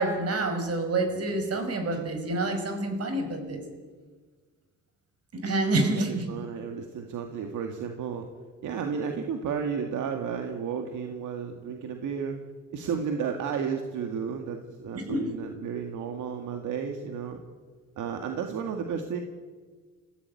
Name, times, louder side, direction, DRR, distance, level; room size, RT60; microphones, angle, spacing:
voice 1, 0.0-3.6 5.3-6.3 14.9-15.2, right 2 dB, 55° right, 6 dB, 5.4 m, -27 dB
voice 2, 5.8-8.3 8.6-12.4 12.7-17.4 18.0-19.2, right 6 dB, 80° right, 4 dB, 2.1 m, -33 dB
25.0 x 15.5 x 9.3 m, 1.5 s
cardioid pair, 90°, 30 cm